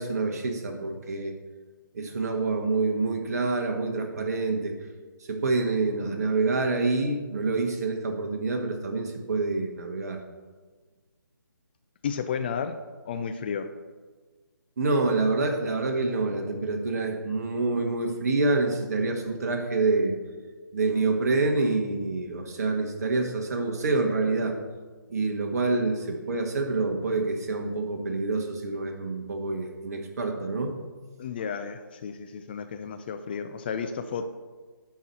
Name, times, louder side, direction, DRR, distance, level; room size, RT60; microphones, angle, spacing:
voice 1, 0.0-1.3 1.9-4.7 5.3-10.2 14.8-20.1 20.7-24.5 25.1-30.8, right 3 dB, 45° right, 4 dB, 1.6 m, -27 dB
voice 2, 12.0-12.8 13.1-13.7 31.2-34.3, left 6 dB, 25° left, 8 dB, 0.5 m, -32 dB
11.0 x 4.8 x 6.9 m, 1.4 s
figure-of-eight pair, 145°, 12 cm